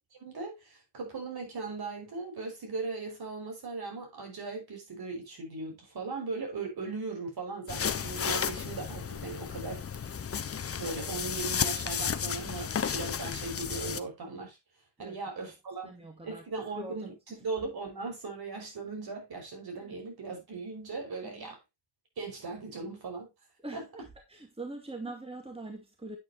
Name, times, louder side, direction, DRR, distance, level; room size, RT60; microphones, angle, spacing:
voice 1, 0.0-10.1 10.8-14.6 15.0-15.9 16.2-17.1 17.4-21.6 22.2-23.3 23.7-23.8, right 3 dB, 60° right, 5.7 m, -38 dB
sound 1, 7.7-14.0, left 7 dB, 35° left, 0.8 m, -33 dB
voice 2, 15.0-15.5 15.8-17.4 19.7-20.0 21.2-21.5 23.6-26.2, right 2 dB, 15° right, 2.2 m, -44 dB
9.3 x 9.2 x 2.9 m
cardioid pair, 115°, 42 cm